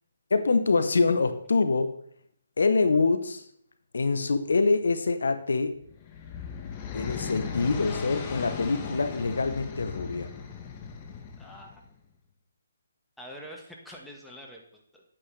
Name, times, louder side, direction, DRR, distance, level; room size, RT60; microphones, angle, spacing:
voice 1, 0.3-1.9 2.6-3.4 3.9-5.7 6.9-10.3, left 4 dB, 75° left, 10 dB, 0.9 m, -25 dB
sound 1, 5.8-11.9, left 6 dB, 25° left, 1.1 m, -37 dB
voice 2, 11.4-11.8 13.2-15.0, equal, ahead, -2 dB, 1.4 m, -45 dB
9.7 x 8.7 x 3.3 m, 0.65 s
hypercardioid pair, 145°, 0 cm